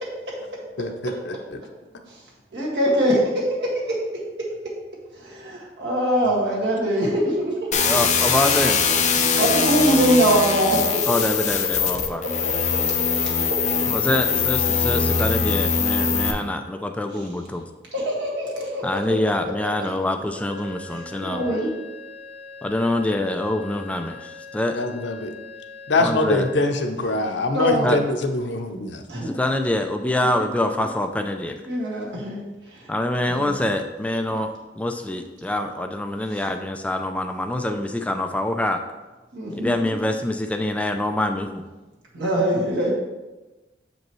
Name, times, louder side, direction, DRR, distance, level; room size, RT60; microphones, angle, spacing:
voice 1, 0.0-0.6 2.5-4.5 5.1-7.8 9.4-11.5 11.8-12.1 12.5-12.6 13.0-13.3 17.1-17.2 17.9-19.0 20.9-21.7 27.0-28.0 29.1-29.4 31.7-32.4 32.7-32.9 33.3-33.5 36.3-36.4 39.3-40.0 42.1-42.9, right 1 dB, 70° right, -4 dB, 1.8 m, -24 dB
sound 1, 7.7-16.3, left 6 dB, 40° left, 0.6 m, -22 dB
voice 2, 7.9-8.8 11.1-12.2 13.9-17.7 18.8-21.4 22.6-24.8 26.0-26.5 27.8-28.0 29.2-31.6 32.9-34.5 34.8-38.8 39.5-41.6, left 1 dB, 10° left, 6 dB, 0.3 m, -25 dB
sound 2, 20.5-26.6, left 4 dB, 45° right, 1.6 m, -41 dB
voice 3, 24.7-25.3 25.9-29.0, left 2 dB, 90° left, 6 dB, 0.7 m, -23 dB
6.9 x 5.2 x 3.1 m, 1.1 s
head